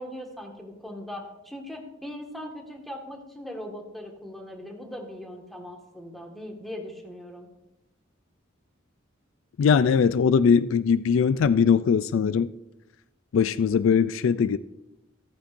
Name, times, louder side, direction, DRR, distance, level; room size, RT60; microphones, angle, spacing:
voice 1, 0.0-7.5, left 1 dB, ahead, 1.7 m, -39 dB
voice 2, 9.6-12.5 13.3-14.6, left 6 dB, 70° left, 0.3 m, -21 dB
14.5 x 14.0 x 2.6 m
head